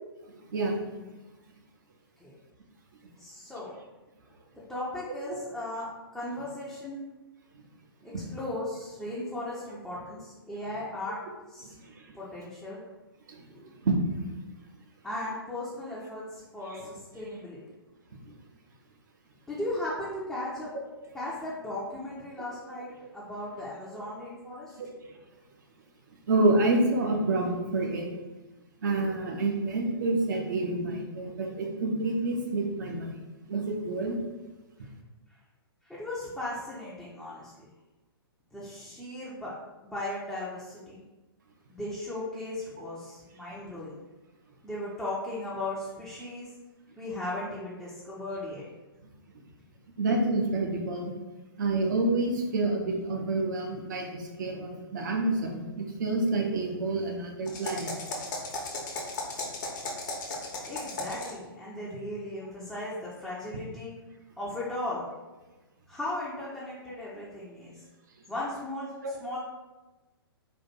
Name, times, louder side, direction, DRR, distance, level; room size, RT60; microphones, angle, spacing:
voice 1, 0.3-0.8 8.1-8.2 12.1-12.2 13.3-13.5 13.8-14.0 16.7-16.8 22.4-22.5 24.8-25.2 26.3-28.1 28.8-33.1 33.5-34.2 50.0-51.1 51.6-57.9, right 2 dB, 50° right, 1 dB, 0.8 m, -28 dB
voice 2, 3.2-3.7 4.7-7.0 8.0-11.2 11.5-11.7 12.1-12.8 13.5-13.7 15.0-17.6 19.5-20.7 21.1-24.8 35.8-37.7 38.5-41.0 41.7-44.0 44.6-46.5 47.0-48.7 60.7-63.9 64.4-65.1 65.9-67.8 68.3-68.9 69.2-69.4, left 1 dB, ahead, -9 dB, 0.6 m, -37 dB
sound 1, 57.5-61.4, left 2 dB, 50° left, 1.0 m, -36 dB
4.3 x 2.5 x 4.2 m, 1.1 s
figure-of-eight pair, 115°, 13 cm